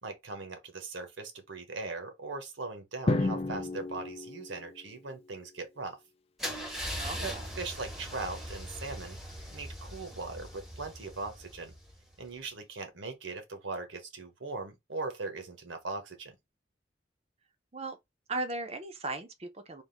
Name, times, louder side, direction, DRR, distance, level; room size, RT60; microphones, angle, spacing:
voice 1, 0.0-6.0 7.2-9.2 9.5-11.7 12.2-16.4, right 3 dB, 75° right, 1.1 m, -40 dB
Drum, 3.1-5.2, left 2 dB, 30° left, 0.4 m, -32 dB
Car / Engine starting / Idling, 6.4-12.2, equal, ahead, 0.9 m, -40 dB
voice 2, 7.0-7.4 17.7-18.0 18.3-19.8, right 2 dB, 30° right, 0.7 m, -37 dB
3.6 x 2.7 x 4.0 m
head